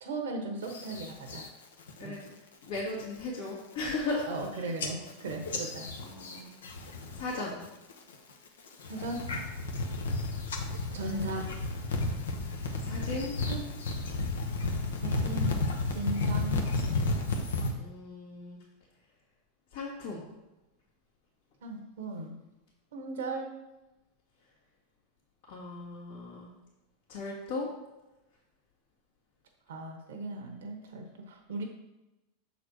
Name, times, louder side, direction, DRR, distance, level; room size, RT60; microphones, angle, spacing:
voice 1, 0.0-1.5 2.0-2.2 4.3-5.9 8.9-9.3 10.9-11.5 13.5-13.6 15.0-15.6 15.9-16.6 21.6-22.4 22.9-23.5 29.7-31.6, right 2 dB, 80° right, 2 dB, 1.1 m, -37 dB
sound 1, 0.7-1.5 1.9-2.3 2.6-3.0 3.5-3.6 3.8-4.5 4.8-7.4 7.6-8.1 8.7-17.7, left 2 dB, 90° left, 0.9 m, -32 dB
voice 2, 2.7-4.3 4.5-5.0 6.0-6.5 7.1-7.6 12.8-13.4 17.7-18.6 19.7-20.3 25.5-26.5 27.1-27.7, left 3 dB, 75° left, -6 dB, 1.7 m, -36 dB
6.8 x 4.1 x 4.6 m, 1.0 s
hypercardioid pair, 110°, 0 cm